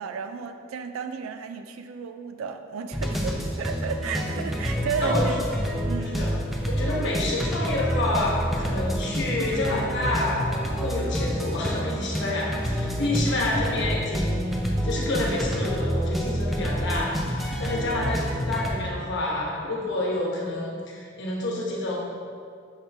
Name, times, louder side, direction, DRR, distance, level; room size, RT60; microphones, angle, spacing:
voice 1, 0.0-5.4 5.9-6.3, right 6 dB, 90° right, 7 dB, 0.3 m, -33 dB
sound 1, 2.9-18.7, equal, ahead, 0.5 m, -28 dB
voice 2, 6.7-22.0, left 2 dB, 60° left, -2 dB, 1.1 m, -28 dB
6.7 x 4.3 x 3.3 m, 2.2 s
head